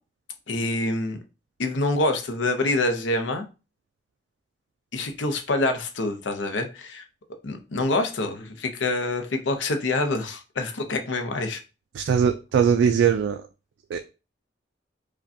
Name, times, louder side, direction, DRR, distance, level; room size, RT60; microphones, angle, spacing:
voice 1, 0.5-1.2 1.6-3.4 4.9-7.0 7.4-11.6, left 2 dB, 85° left, 0.6 m, -26 dB
voice 2, 11.9-13.5 13.9-14.0, right 7 dB, 80° right, 0.3 m, -21 dB
4.8 x 2.2 x 2.7 m
head